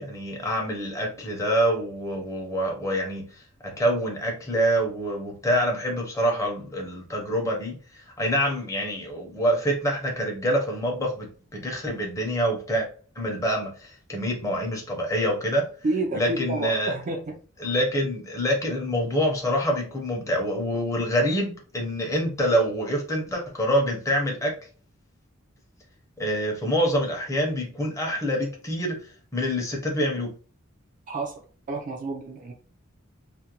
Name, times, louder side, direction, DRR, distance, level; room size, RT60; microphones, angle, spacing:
voice 1, 0.0-12.9 13.2-15.7 16.1-17.0 17.6-24.6 26.2-29.1 29.3-30.3, equal, 15° left, 0.7 m, -26 dB
voice 2, 15.8-17.4 31.1-32.5, right 2 dB, 40° right, 0.3 m, -30 dB
2.5 x 2.1 x 2.8 m
head